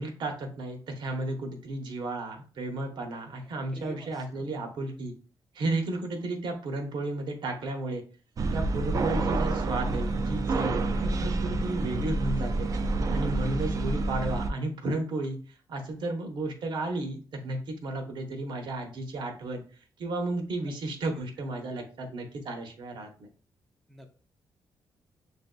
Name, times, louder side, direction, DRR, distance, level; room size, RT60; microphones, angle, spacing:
voice 1, 0.0-5.1 5.5-8.0 8.5-12.7 13.1-15.4 15.7-19.6 20.0-23.3, right 2 dB, 70° right, 4 dB, 0.9 m, -33 dB
voice 2, 3.7-4.5 21.1-21.2 23.9-24.2, equal, ahead, 2 dB, 0.6 m, -48 dB
sound 1, 8.4-14.5, right 2 dB, 45° right, 0.4 m, -28 dB
6.7 x 2.6 x 2.2 m, 0.40 s
cardioid pair, 125°, 8 cm